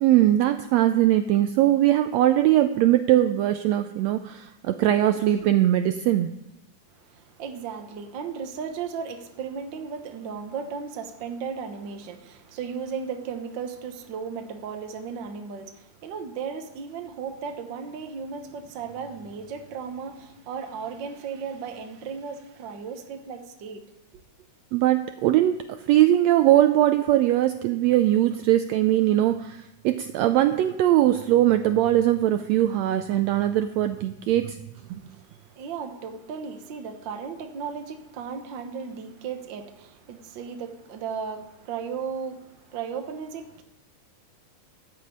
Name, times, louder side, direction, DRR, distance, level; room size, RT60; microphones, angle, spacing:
voice 1, 0.0-6.3 24.7-34.6 34.9-35.0, right 13 dB, 85° right, 1.5 m, -21 dB
voice 2, 7.0-23.8 34.9-43.6, right 6 dB, 60° right, 1.2 m, -35 dB
14.5 x 5.9 x 8.5 m
omnidirectional pair, 3.6 m